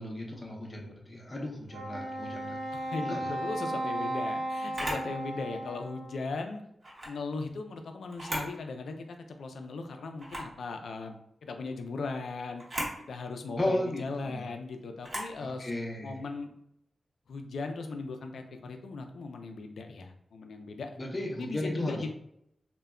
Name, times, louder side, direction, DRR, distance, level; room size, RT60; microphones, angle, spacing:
voice 1, 0.0-2.6 3.0-3.3 13.6-14.4 15.4-16.2 21.0-22.0, left 1 dB, 30° left, 0 dB, 0.6 m, -35 dB
Wind instrument woodwind instrument, 1.7-6.3, right 1 dB, 80° right, 0.7 m, -35 dB
voice 2, 2.7-6.6 7.0-11.2 11.4-12.6 13.0-15.7 16.0-16.5 17.3-20.9 21.4-22.1, left 3 dB, 85° left, 5 dB, 0.3 m, -38 dB
Camera, 4.7-5.1 6.8-7.1 8.1-8.6 9.0-9.1 10.2-10.5 12.6-13.0 15.0-15.3, right 1 dB, 35° right, 1.0 m, -36 dB
2.1 x 2.1 x 3.5 m, 0.76 s
wide cardioid pair, 100°, 0 cm